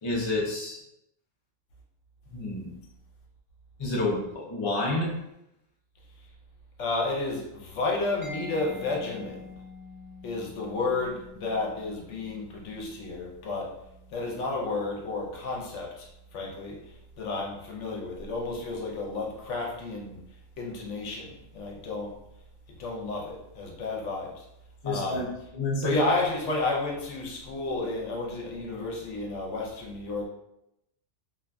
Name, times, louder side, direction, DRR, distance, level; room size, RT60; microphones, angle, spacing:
voice 1, 0.0-0.8 2.3-2.7 3.8-5.1 24.8-25.3 25.5-26.0, left 2 dB, 40° left, -4 dB, 0.4 m, -29 dB
voice 2, 6.8-9.4 10.2-13.7 14.1-16.1 16.3-16.8 17.2-20.2 20.6-22.1 22.8-24.4 24.8-25.3 25.8-30.3, left 3 dB, 70° left, -2 dB, 0.9 m, -31 dB
Mallet percussion, 8.2-15.8, left 3 dB, 45° right, 1.0 m, -48 dB
2.7 x 2.4 x 2.2 m, 0.84 s
omnidirectional pair, 1.3 m